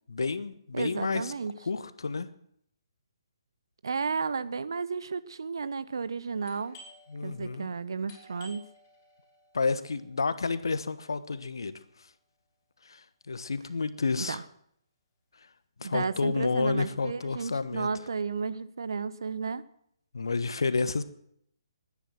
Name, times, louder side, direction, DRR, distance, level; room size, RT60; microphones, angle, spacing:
voice 1, 0.1-1.3 1.6-2.3 7.1-7.7 9.5-11.8 12.9-14.4 15.8-17.9 20.1-21.0, left 4 dB, 65° left, 13 dB, 1.2 m, -30 dB
voice 2, 0.7-1.5 3.8-6.8 7.2-8.6 14.2-14.4 15.8-19.6, right 5 dB, 65° right, 15 dB, 0.8 m, -33 dB
Doorbell, 6.4-11.9, left 1 dB, 30° left, 6.2 m, -56 dB
20.5 x 9.9 x 6.1 m, 0.71 s
figure-of-eight pair, 135°, 2 cm